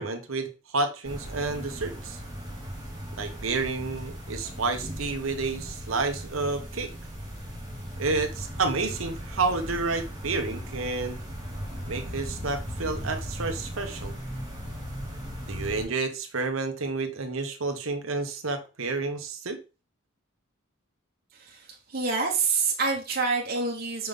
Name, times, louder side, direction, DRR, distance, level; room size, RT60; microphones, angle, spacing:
voice 1, 0.0-2.2 3.2-6.9 8.0-11.2 11.8-14.1 15.5-19.6, right 3 dB, 75° right, 6 dB, 1.0 m, -30 dB
sound 1, 1.0-15.8, equal, 20° right, 2.5 m, -37 dB
voice 2, 21.3-24.1, right 4 dB, 45° right, -1 dB, 1.2 m, -27 dB
5.3 x 5.3 x 3.7 m, 0.31 s
head